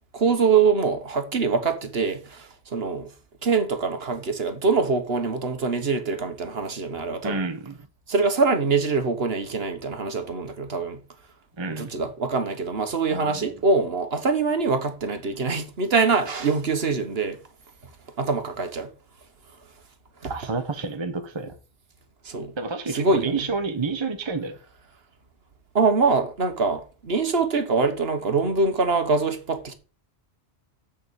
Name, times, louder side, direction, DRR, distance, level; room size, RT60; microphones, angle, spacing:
voice 1, 0.1-3.1 3.4-7.4 8.1-11.0 11.7-17.4 18.2-18.9 20.2-20.3 22.2-22.5 22.9-23.4 25.7-29.7, right 4 dB, 65° right, 1.5 m, -24 dB
voice 2, 7.2-7.8 11.6-11.9 13.1-13.5 20.3-21.5 22.5-24.6, right 4 dB, 25° right, 1.0 m, -29 dB
7.5 x 6.8 x 6.8 m
omnidirectional pair, 1.1 m